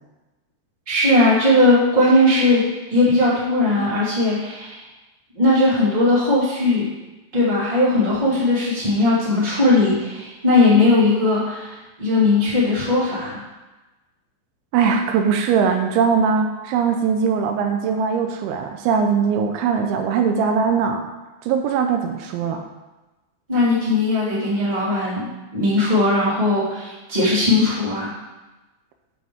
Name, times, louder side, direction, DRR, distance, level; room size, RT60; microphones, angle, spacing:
voice 1, 0.9-2.6 2.9-4.8 5.3-6.9 7.3-13.4 23.5-28.1, left 2 dB, 10° right, -9 dB, 2.3 m, -18 dB
voice 2, 14.7-21.1 21.4-22.7, right 6 dB, 85° right, 5 dB, 3.0 m, -20 dB
8.7 x 7.5 x 3.5 m, 1.1 s
omnidirectional pair, 5.4 m